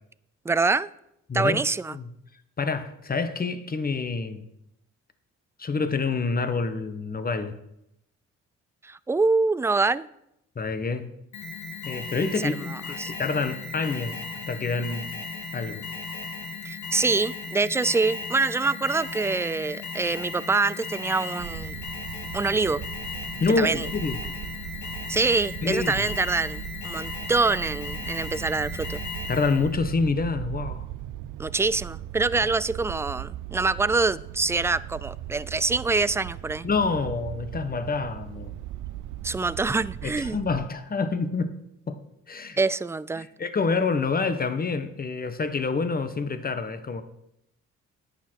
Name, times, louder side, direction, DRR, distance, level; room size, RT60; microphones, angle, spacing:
voice 1, 0.5-0.9 1.3-2.0 8.8-10.1 12.4-12.5 13.0-13.1 16.7-21.8 22.3-22.8 23.6-23.9 25.1-29.0 31.4-36.7 39.2-40.4 42.6-43.3, right 3 dB, 10° right, 18 dB, 0.3 m, -25 dB
voice 2, 1.3-1.6 1.9-2.1 2.6-4.5 5.6-7.6 10.5-11.1 11.8-14.2 14.5-15.1 15.5-15.8 23.4-24.2 25.6-26.0 29.3-30.8 36.6-38.5 40.0-41.6 41.9-42.0 42.3-42.6 43.2-47.0, left 4 dB, 30° left, 9 dB, 1.2 m, -27 dB
Alarm, 11.3-29.7, left 3 dB, 70° left, 2.3 m, -36 dB
sound 1, 21.4-40.7, right 13 dB, 85° right, 0.6 m, -38 dB
11.0 x 8.8 x 4.6 m, 0.80 s
cardioid pair, 90°, 30 cm